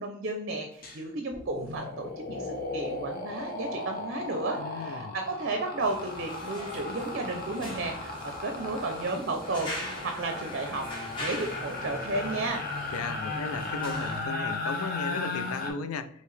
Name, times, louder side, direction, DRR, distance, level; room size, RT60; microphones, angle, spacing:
voice 1, 0.0-8.1 8.4-9.7 10.0-12.6, right 2 dB, 50° right, 4 dB, 0.5 m, -33 dB
sound 1, 0.8-1.0 1.3-15.7, left 2 dB, 45° left, 0.8 m, -36 dB
voice 2, 4.6-5.2 12.9-16.2, left 4 dB, 90° left, 11 dB, 0.4 m, -36 dB
sound 2, 5.8-14.2, left 1 dB, 25° left, 1.2 m, -41 dB
4.6 x 2.9 x 3.2 m, 0.66 s
head